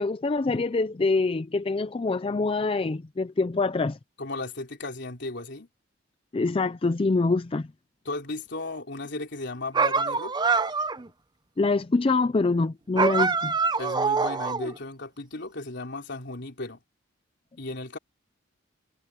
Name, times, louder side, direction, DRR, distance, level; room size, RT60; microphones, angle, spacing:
voice 1, 0.0-4.0 6.3-7.7 11.6-13.5, left 3 dB, 30° left, 0.4 m, -25 dB
voice 2, 4.2-5.7 8.1-10.4 13.8-16.8 17.6-18.0, left 2 dB, 60° left, 3.8 m, -35 dB
sound 1, 9.7-11.1 13.0-14.8, right 4 dB, 20° right, 0.6 m, -25 dB
head